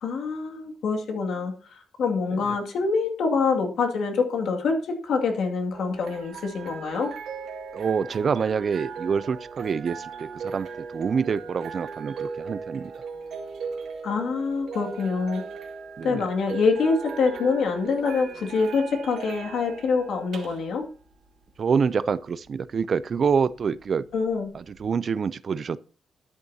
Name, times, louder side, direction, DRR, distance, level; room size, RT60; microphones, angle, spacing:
voice 1, 0.0-1.5 2.0-7.1 14.0-15.4 16.0-20.8 24.1-24.5, left 4 dB, 75° left, 2.3 m, -25 dB
sound 1, 5.7-24.9, right 5 dB, 80° right, 1.9 m, -39 dB
voice 2, 7.7-10.7 10.9-12.9 16.0-16.3 21.6-24.0 24.5-25.8, right 6 dB, 45° right, 0.4 m, -26 dB
12.0 x 9.6 x 2.8 m
cardioid pair, 140°, 0 cm